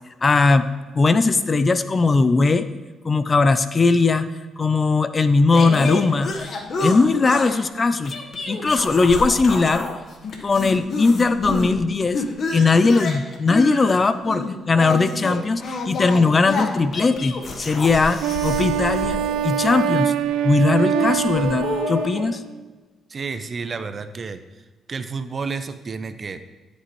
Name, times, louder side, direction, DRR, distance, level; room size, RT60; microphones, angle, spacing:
voice 1, 0.2-0.7 0.9-2.7 3.0-4.3 4.6-6.3 6.8-8.1 8.5-9.9 10.4-12.2 12.5-19.2 19.4-20.1 20.4-22.4, left 3 dB, 30° left, 13 dB, 0.5 m, -19 dB
sound 1, 5.5-7.6 8.1-10.0 10.2-11.8 12.1-20.1 20.9-22.2, left 3 dB, 55° left, 1.3 m, -29 dB
Wind instrument woodwind instrument, 18.2-22.5, right 9 dB, 90° right, 0.4 m, -24 dB
voice 2, 23.1-24.4 24.9-26.4, right 4 dB, 40° right, 11 dB, 0.7 m, -30 dB
13.0 x 8.2 x 3.2 m, 1.3 s
cardioid pair, 90°, 0 cm